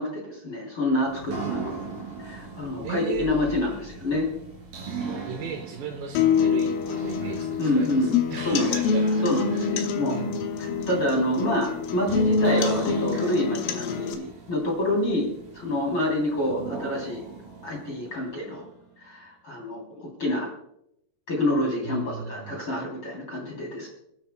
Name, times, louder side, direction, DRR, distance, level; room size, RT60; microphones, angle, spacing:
voice 1, 0.0-1.8 2.2-4.3 7.6-8.1 8.4-8.7 9.2-10.2 10.6-15.3 15.5-17.2 17.6-18.7 19.0-20.5 21.3-23.9, left 1 dB, 30° left, -2 dB, 3.0 m, -27 dB
sound 1, 1.1-18.9, right 4 dB, 45° right, 4.9 m, -40 dB
voice 2, 2.8-3.3 5.3-9.7 10.1-10.4 21.8-22.7, right 6 dB, 70° right, 3 dB, 2.9 m, -36 dB
sound 2, 6.2-14.1, left 5 dB, 80° left, 3.6 m, -26 dB
29.5 x 9.8 x 2.2 m, 0.78 s
omnidirectional pair, 5.9 m